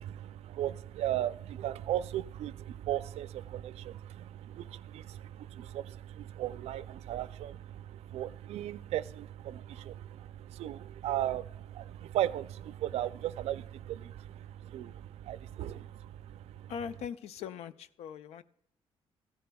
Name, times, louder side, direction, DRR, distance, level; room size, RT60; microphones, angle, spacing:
voice 1, 0.0-16.7, right 12 dB, 80° right, 0.4 m, -37 dB
voice 2, 16.7-18.4, left 7 dB, 90° left, 0.5 m, -40 dB
15.5 x 10.0 x 2.3 m
cardioid pair, 115°, 11 cm